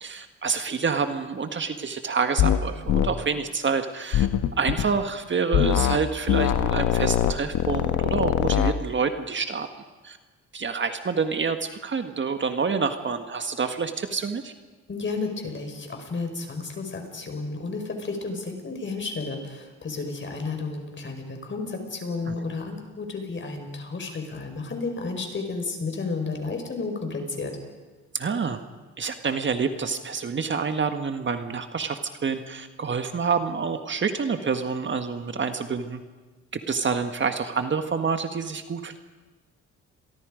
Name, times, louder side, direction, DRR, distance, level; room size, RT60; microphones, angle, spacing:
voice 1, 0.0-4.3 4.6-9.7 10.0-10.2 10.5-14.5 22.3-22.4 28.1-28.6 29.0-36.0 36.7-39.0, right 5 dB, 40° right, 7 dB, 1.7 m, -27 dB
sound 1, 2.4-2.6 2.9-3.1 4.1-4.9 5.5-6.0 6.3-8.7, left 11 dB, 80° left, 1.3 m, -22 dB
voice 2, 14.9-27.6, left 3 dB, 40° left, 4 dB, 5.3 m, -32 dB
30.0 x 23.0 x 5.2 m, 1.3 s
cardioid pair, 90°, 30 cm